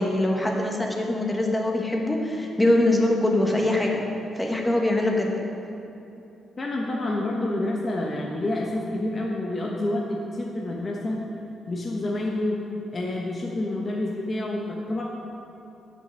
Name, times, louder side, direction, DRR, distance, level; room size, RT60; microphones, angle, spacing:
voice 1, 0.0-4.0 4.4-5.3, left 1 dB, 10° left, 0 dB, 1.3 m, -23 dB
voice 2, 6.6-11.2 11.7-12.6 12.9-15.0, left 1 dB, 30° left, -2 dB, 1.0 m, -28 dB
9.2 x 6.6 x 6.3 m, 2.9 s
cardioid pair, 110°, 0 cm